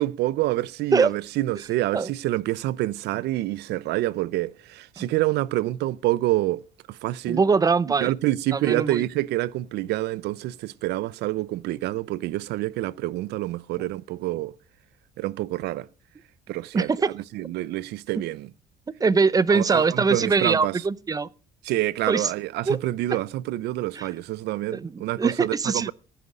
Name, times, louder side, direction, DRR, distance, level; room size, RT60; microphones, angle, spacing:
voice 1, 0.0-6.6 6.9-7.4 8.0-14.5 15.2-15.9 16.5-18.5 19.5-20.8 21.6-25.9, right 16 dB, 80° right, 0.6 m, -27 dB
voice 2, 7.3-8.1 8.5-9.0 16.7-17.1 19.0-21.3 22.1-22.3 22.7-22.8 24.0-24.1 24.7-25.9, right 4 dB, 20° right, 0.6 m, -22 dB
15.0 x 10.0 x 5.0 m
cardioid pair, 110°, 17 cm